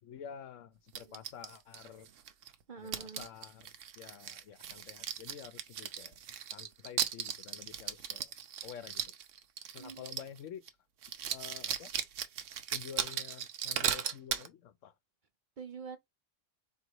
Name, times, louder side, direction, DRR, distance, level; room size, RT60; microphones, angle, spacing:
voice 1, 0.0-2.1 2.8-6.2 6.5-8.3 8.6-9.1 9.7-10.7 11.3-11.9 12.7-14.9, left 8 dB, 80° left, 1.1 m, -49 dB
sound 1, 0.9-2.6 2.9-10.4 10.7-10.8 11.0-14.5, right 9 dB, 80° right, 1.1 m, -37 dB
voice 2, 2.7-3.3 9.8-10.0 15.6-16.0, right 5 dB, 45° right, 0.7 m, -45 dB
4.6 x 2.9 x 4.0 m
omnidirectional pair, 1.3 m